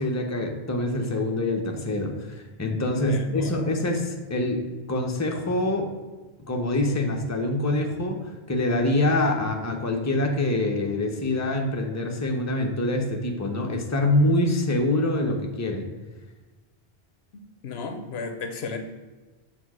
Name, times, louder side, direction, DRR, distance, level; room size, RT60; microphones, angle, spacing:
voice 1, 0.0-5.9 6.4-15.9, left 1 dB, 20° left, 2 dB, 0.8 m, -25 dB
voice 2, 2.9-3.8 17.6-18.8, left 4 dB, 85° left, 6 dB, 1.1 m, -34 dB
6.9 x 3.6 x 6.1 m, 1.2 s
omnidirectional pair, 1.0 m